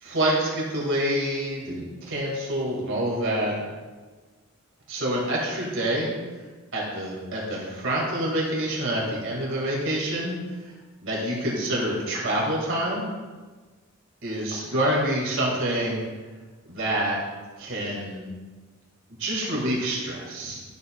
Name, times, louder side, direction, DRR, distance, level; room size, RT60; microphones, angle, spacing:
voice 1, 0.0-3.6 4.9-6.1 6.7-10.4 11.0-13.0 14.2-16.0 16.7-17.2 17.6-18.2 19.2-20.6, right 1 dB, 65° right, -4 dB, 2.2 m, -27 dB
11.0 x 6.9 x 2.4 m, 1.4 s
head